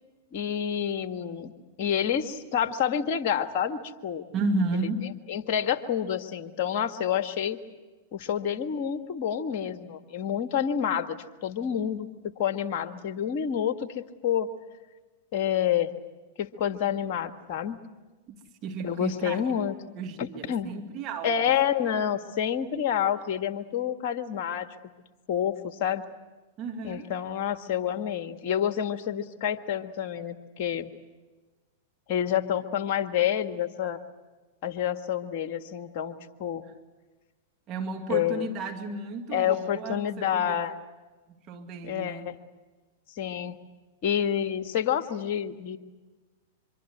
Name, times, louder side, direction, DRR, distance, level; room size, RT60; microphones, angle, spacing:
voice 1, 0.3-1.5 1.8-4.2 4.7-4.9 5.3-7.6 8.1-14.5 15.3-15.9 16.4-17.8 18.8-19.8 20.2-20.7 21.2-24.9 25.3-26.0 26.8-30.9 32.1-34.0 34.6-36.6 38.1-38.5 39.3-40.8 41.8-42.4 43.1-43.6 44.0-45.8, left 9 dB, 45° left, 9 dB, 1.7 m, -28 dB
voice 2, 4.3-5.1 18.3-18.4 18.6-19.5 20.0-21.3 26.6-27.1 37.7-40.6 41.3-42.3, right 3 dB, 35° right, 3 dB, 2.2 m, -33 dB
24.5 x 24.0 x 8.0 m, 1.2 s
figure-of-eight pair, 100°, 0 cm